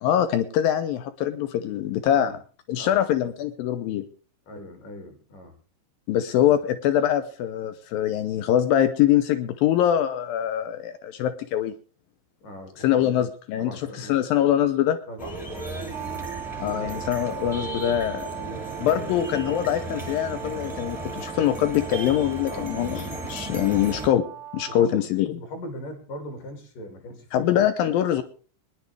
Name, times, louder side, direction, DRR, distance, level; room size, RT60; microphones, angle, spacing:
voice 1, 0.0-2.4 2.7-4.1 6.1-11.7 12.8-13.7 14.0-15.0 16.6-18.3 18.8-24.3 24.5-25.3 27.3-28.2, left 11 dB, 85° left, 11 dB, 2.0 m, -23 dB
voice 2, 2.8-3.1 4.5-5.5 6.5-6.6 12.4-13.3 13.6-14.3 15.1-17.1 18.2-19.3 22.5-22.7 24.6-27.7, equal, 50° left, 6 dB, 3.6 m, -40 dB
sound 1, 15.2-24.1, right 2 dB, ahead, 1.3 m, -35 dB
Brass instrument, 15.9-24.9, right 11 dB, 85° right, 1.0 m, -39 dB
22.5 x 10.5 x 3.4 m, 0.37 s
omnidirectional pair, 5.2 m